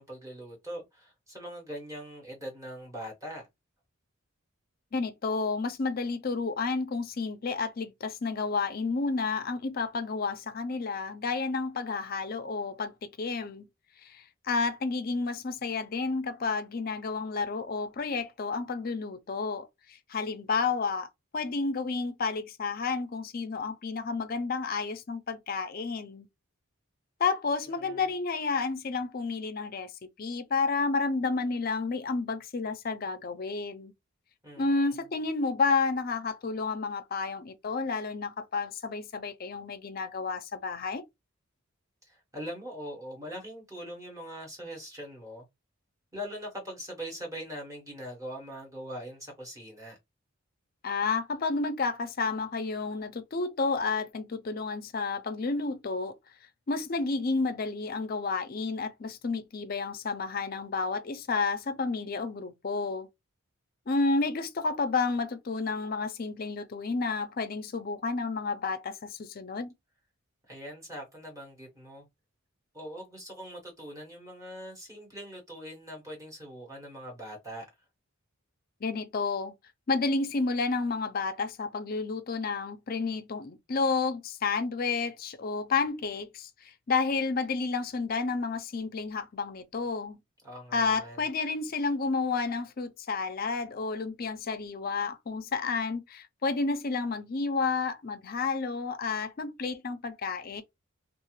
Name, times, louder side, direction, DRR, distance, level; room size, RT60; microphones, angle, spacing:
voice 1, 0.0-3.5 27.8-28.0 34.4-34.9 42.0-45.4 46.1-50.0 70.5-72.0 72.7-77.7 90.4-91.2, equal, 15° right, 1.2 m, -42 dB
voice 2, 4.9-13.7 14.0-21.1 21.3-26.3 27.2-29.9 30.2-33.9 34.6-41.0 50.8-56.1 56.7-63.1 63.9-69.7 78.8-79.5 79.9-90.2 90.7-100.6, left 4 dB, 45° left, 0.4 m, -31 dB
2.4 x 2.3 x 3.1 m
head